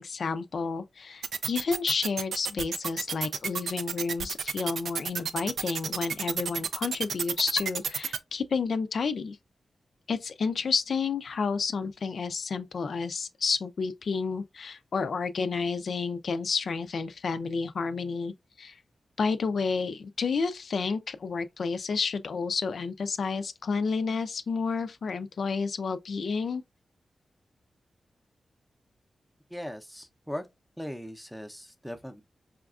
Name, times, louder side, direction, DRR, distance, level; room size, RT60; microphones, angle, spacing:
voice 1, 0.0-9.4 10.1-18.8 19.2-26.6, left 5 dB, 70° left, 0.3 m, -30 dB
sound 1, 1.2-8.2, right 6 dB, 90° right, 0.3 m, -31 dB
voice 2, 29.5-30.5 30.8-32.2, equal, ahead, 0.6 m, -39 dB
4.9 x 2.3 x 2.4 m
wide cardioid pair, 95°, 0 cm